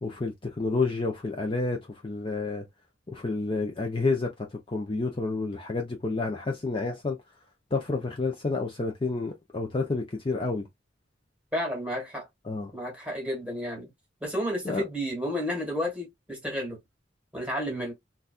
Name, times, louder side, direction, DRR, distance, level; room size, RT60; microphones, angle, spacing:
voice 1, 0.0-2.7 3.1-4.3 4.7-7.2 7.7-10.7 12.4-12.7 14.6-14.8, left 3 dB, 30° left, 0.6 m, -29 dB
voice 2, 11.5-12.3 12.7-13.9 14.2-16.8 17.3-17.9, equal, 5° right, 1.6 m, -31 dB
4.0 x 2.3 x 2.4 m
head